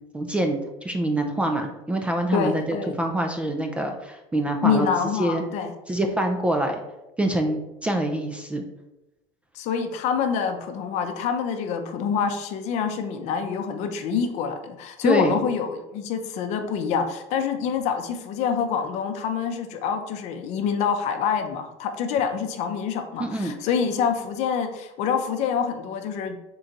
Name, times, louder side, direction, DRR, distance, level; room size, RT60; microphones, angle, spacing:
voice 1, 0.1-4.9 5.2-5.4 5.9-6.8 7.2-8.6 15.0-15.4 23.2-23.5, right 1 dB, 10° right, 4 dB, 0.3 m, -25 dB
voice 2, 2.3-3.0 4.6-5.7 9.5-26.4, left 7 dB, 50° left, 7 dB, 0.6 m, -26 dB
3.8 x 2.6 x 4.5 m, 0.97 s
cardioid pair, 145°, 14 cm